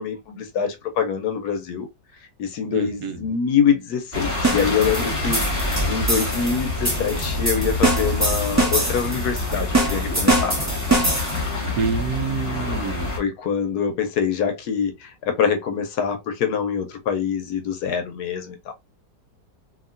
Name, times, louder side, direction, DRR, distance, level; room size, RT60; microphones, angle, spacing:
voice 1, 0.0-1.9 2.4-10.6 12.7-12.8 13.1-18.7, left 7 dB, 70° left, 1.1 m, -25 dB
voice 2, 2.7-3.3 11.8-13.1, right 6 dB, 70° right, 1.0 m, -27 dB
sound 1, 4.1-13.2, left 2 dB, 20° left, 1.2 m, -27 dB
sound 2, 4.4-11.5, right 2 dB, 20° right, 0.4 m, -24 dB
2.9 x 2.7 x 2.4 m
omnidirectional pair, 1.9 m